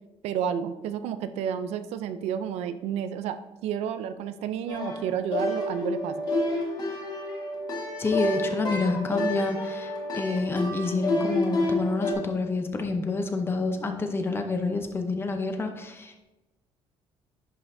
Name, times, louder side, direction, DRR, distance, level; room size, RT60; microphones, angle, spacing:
voice 1, 0.2-6.3, right 8 dB, 85° right, 11 dB, 0.5 m, -31 dB
sound 1, 4.7-12.1, left 1 dB, 40° left, 1.6 m, -29 dB
voice 2, 8.0-16.2, left 3 dB, 20° left, 5 dB, 0.7 m, -28 dB
10.5 x 5.5 x 2.7 m, 1.1 s
cardioid pair, 155°, 11 cm